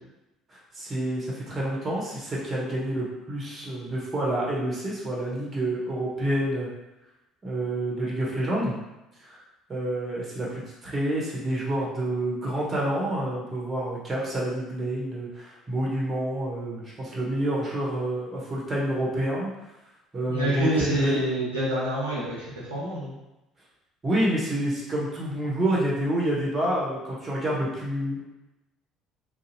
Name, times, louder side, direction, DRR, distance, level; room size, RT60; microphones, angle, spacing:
voice 1, 0.5-6.7 7.4-8.7 9.2-9.4 9.7-19.5 20.1-21.2 24.0-28.2, right 1 dB, 30° right, -5 dB, 0.9 m, -28 dB
voice 2, 20.3-23.1, right 1 dB, 85° right, -8 dB, 0.6 m, -27 dB
2.6 x 2.0 x 2.7 m, 0.97 s
figure-of-eight pair, 55°, 0 cm